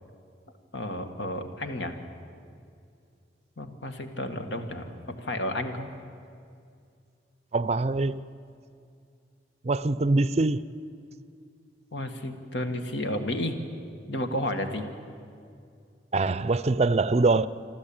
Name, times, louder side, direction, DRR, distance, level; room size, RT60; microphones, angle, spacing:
voice 1, 0.7-2.0 3.6-5.9 11.9-13.6 14.1-14.9, left 1 dB, 80° left, 1.9 m, -32 dB
voice 2, 7.5-8.2 9.6-10.7 16.1-17.5, right 3 dB, 35° right, 0.5 m, -23 dB
27.5 x 13.0 x 8.8 m
head